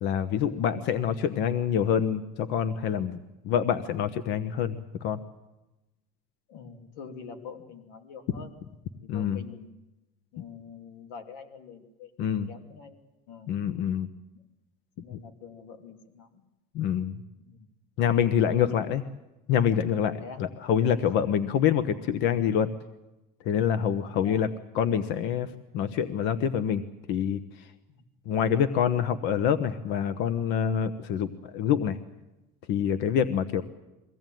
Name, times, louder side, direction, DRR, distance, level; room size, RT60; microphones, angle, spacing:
voice 1, 0.0-3.2 3.4-5.2 9.1-9.4 12.2-12.5 13.5-14.1 15.1-15.2 16.7-17.1 18.0-19.0 19.5-22.7 23.4-24.5 24.7-26.8 27.1-27.4 28.3-32.0 32.7-33.6, left 8 dB, 60° left, 13 dB, 1.1 m, -26 dB
voice 2, 6.5-8.5 9.0-9.7 10.3-12.1 12.5-13.0 13.3-13.6 15.0-16.4 17.4-17.7 18.7-18.9 20.2-20.5 21.0-21.3 24.0-24.4 27.9-28.1 28.9-29.1, left 6 dB, 80° left, 7 dB, 3.0 m, -45 dB
23.5 x 16.5 x 9.2 m, 0.99 s
cardioid pair, 165°, 21 cm